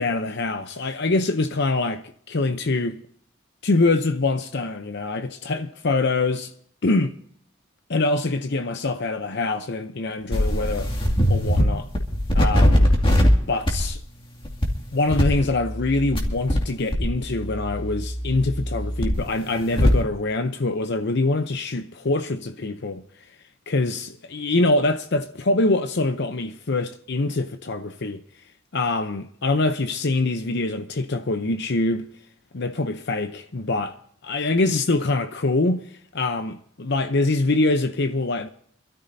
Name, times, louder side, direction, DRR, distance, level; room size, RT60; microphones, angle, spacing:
voice 1, 0.0-3.0 3.6-6.5 6.8-7.1 7.9-10.9 11.3-11.9 12.3-12.9 13.5-14.0 14.9-23.0 23.7-28.2 28.7-32.1 32.5-34.0 34.2-35.8 36.1-38.5, left 2 dB, 55° left, 0.8 m, -24 dB
sound 1, 10.3-11.7 11.9-13.3 13.7-13.9 14.4-14.7 15.1-16.6 16.9-20.0, equal, 25° left, 2.3 m, -21 dB
26.0 x 13.0 x 2.8 m
head